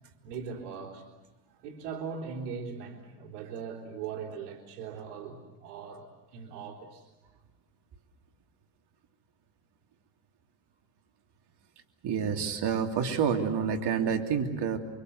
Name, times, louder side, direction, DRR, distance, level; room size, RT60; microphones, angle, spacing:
voice 1, 0.2-1.0 1.6-7.1, right 6 dB, 85° right, -4 dB, 3.8 m, -40 dB
voice 2, 12.0-14.8, right 7 dB, 55° right, 4 dB, 3.2 m, -28 dB
29.0 x 24.5 x 8.1 m, 1.1 s
supercardioid pair, 90°, 48 cm